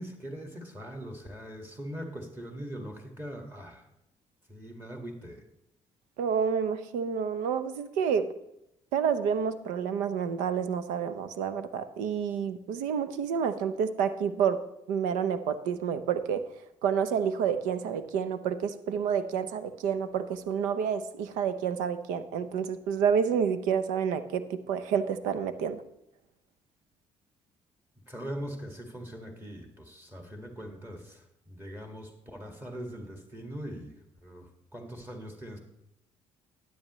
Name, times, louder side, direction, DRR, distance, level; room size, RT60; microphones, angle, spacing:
voice 1, 0.0-3.9 4.5-5.4 28.1-34.0 34.2-35.6, equal, 15° right, 2 dB, 1.9 m, -41 dB
voice 2, 6.2-8.3 8.9-14.6 14.9-16.4 16.8-25.8, right 7 dB, 85° right, 12 dB, 0.7 m, -29 dB
12.5 x 9.6 x 3.1 m, 0.82 s
supercardioid pair, 70°, 13 cm